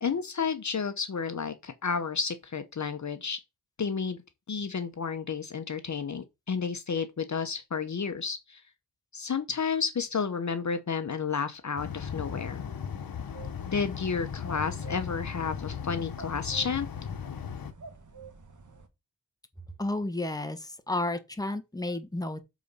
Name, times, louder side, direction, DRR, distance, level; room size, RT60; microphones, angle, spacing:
voice 1, 0.0-3.4 3.8-4.2 4.5-8.6 9.1-12.6 13.7-16.9, left 5 dB, 55° left, 0.9 m, -31 dB
sound 1, 11.8-17.7, left 7 dB, 85° left, 1.0 m, -37 dB
sound 2, 13.3-18.9, right 4 dB, 60° right, 1.4 m, -49 dB
voice 2, 19.8-22.4, left 2 dB, 10° left, 1.3 m, -32 dB
7.4 x 4.0 x 5.4 m
wide cardioid pair, 70°, 34 cm